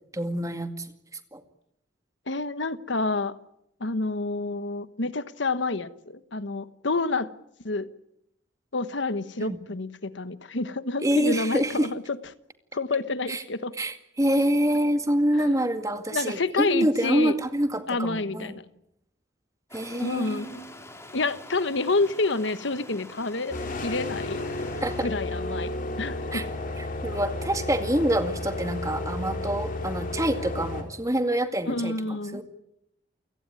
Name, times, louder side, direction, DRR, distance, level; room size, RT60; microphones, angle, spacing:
voice 1, 0.1-0.9 1.3-1.4 9.4-9.6 11.0-11.9 13.3-13.4 13.8-18.6 19.7-20.6 24.8-25.1 26.3-26.4 26.8-32.4, right 1 dB, 15° right, 8 dB, 2.1 m, -26 dB
voice 2, 2.3-3.4 3.8-7.3 7.6-7.9 8.7-12.0 12.7-13.7 15.3-15.4 16.1-17.3 17.9-18.6 20.0-20.6 21.1-23.6 23.8-24.4 25.0-26.4 31.7-32.4, left 3 dB, 75° left, 13 dB, 1.2 m, -28 dB
Stream, 19.7-25.0, left 1 dB, 15° left, 4.1 m, -46 dB
sound 1, 23.5-30.8, left 2 dB, 45° left, 3.7 m, -32 dB
29.5 x 17.0 x 9.7 m, 0.78 s
head